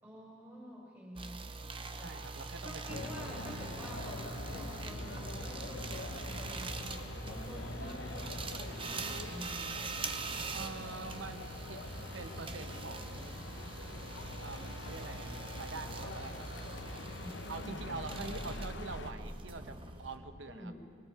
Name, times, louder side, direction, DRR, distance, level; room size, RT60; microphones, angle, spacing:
voice 1, 0.0-1.4 1.9-2.2 2.6-9.7 17.0-17.5 20.5-20.8, equal, 10° right, -2 dB, 4.5 m, -49 dB
sound 1, 1.2-20.2, right 3 dB, 25° right, 0.8 m, -43 dB
voice 2, 1.9-3.6 10.5-11.8 12.1-13.4 14.4-16.5 17.5-20.7, right 3 dB, 75° right, 9 dB, 1.0 m, -45 dB
sound 2, 2.9-19.1, left 2 dB, 65° left, 1.0 m, -44 dB
sound 3, 3.4-20.3, equal, 55° right, 4.8 m, -52 dB
26.0 x 21.5 x 4.8 m, 2.6 s
head